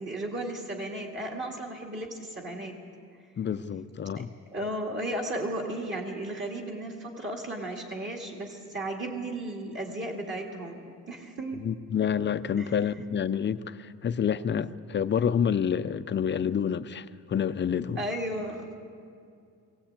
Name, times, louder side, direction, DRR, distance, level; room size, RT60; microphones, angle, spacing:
voice 1, 0.0-2.8 4.2-4.3 4.5-11.6 12.6-12.7 18.0-18.8, right 1 dB, 35° right, 2.1 m, -34 dB
voice 2, 3.4-4.3 11.6-18.0, left 8 dB, 35° left, 0.5 m, -28 dB
22.0 x 17.0 x 8.7 m
wide cardioid pair, 165°, 32 cm